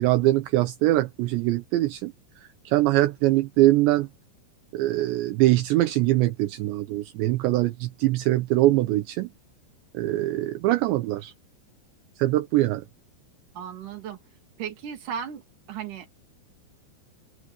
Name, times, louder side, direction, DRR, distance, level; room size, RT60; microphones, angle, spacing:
voice 1, 0.0-2.1 2.7-4.1 4.7-9.3 9.9-11.3 12.2-12.8, right 16 dB, 75° right, 3.1 m, -22 dB
voice 2, 13.6-14.2 14.6-15.4 15.7-16.1, right 8 dB, 50° right, 3.8 m, -35 dB
omnidirectional pair, 5.3 m